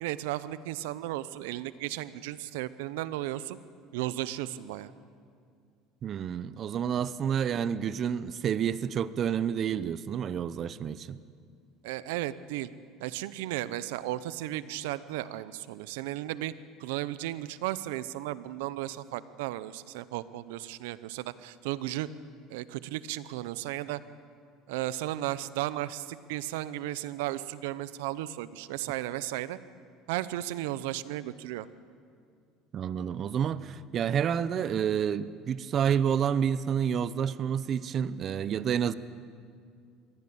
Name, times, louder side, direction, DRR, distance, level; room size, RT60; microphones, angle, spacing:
voice 1, 0.0-3.6 3.9-4.9 11.8-12.7 13.0-16.5 16.8-22.1 22.5-24.0 24.7-29.6 30.1-31.7, right 15 dB, 85° right, 16 dB, 0.8 m, -35 dB
voice 2, 6.0-11.2 32.7-38.9, right 8 dB, 45° right, 16 dB, 0.7 m, -29 dB
23.0 x 15.5 x 8.7 m, 2.2 s
supercardioid pair, 110°, 0 cm